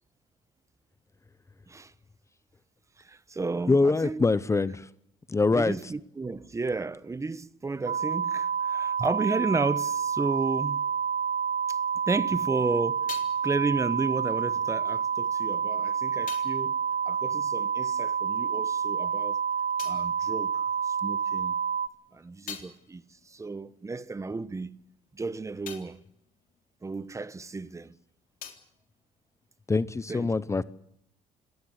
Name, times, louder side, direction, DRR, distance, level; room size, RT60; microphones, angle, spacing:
voice 1, 3.0-4.2 5.5-10.8 11.7-11.8 12.1-13.1 13.4-19.4 19.8-21.6 22.1-24.7 25.1-26.0 26.8-27.9 30.1-30.3, right 3 dB, 20° right, 1.1 m, -33 dB
voice 2, 3.7-4.9 5.3-5.9 29.7-30.6, left 3 dB, 20° left, 0.8 m, -24 dB
sound 1, 7.9-21.9, right 7 dB, 50° right, 0.9 m, -28 dB
sound 2, 12.4-18.3 18.5-21.2 21.6-27.7 27.9-29.9, left 8 dB, 65° left, 3.7 m, -49 dB
25.0 x 18.0 x 8.2 m
cardioid pair, 100°, 15 cm